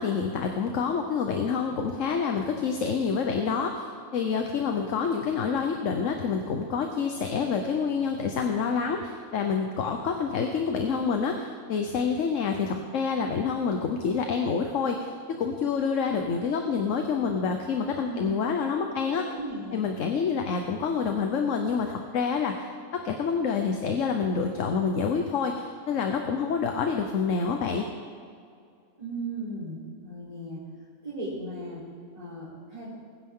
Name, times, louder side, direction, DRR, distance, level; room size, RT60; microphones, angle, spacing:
voice 1, 0.0-15.1 15.4-19.3 19.7-22.7 22.9-27.8, left 5 dB, 65° left, 4 dB, 1.2 m, -27 dB
voice 2, 19.1-19.8 29.0-30.7 31.0-32.9, right 2 dB, 25° right, -10 dB, 3.8 m, -37 dB
21.5 x 10.0 x 3.8 m, 2.3 s
omnidirectional pair, 1.5 m